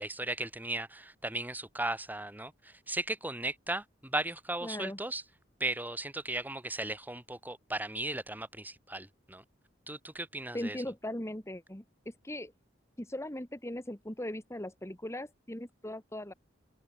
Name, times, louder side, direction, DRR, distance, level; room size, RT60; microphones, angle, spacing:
voice 1, 0.0-5.2 5.6-9.4 9.9-10.8, right 2 dB, 10° right, 3.3 m, -36 dB
voice 2, 4.6-5.0 10.5-12.5 13.0-16.3, left 1 dB, 15° left, 2.3 m, -39 dB
head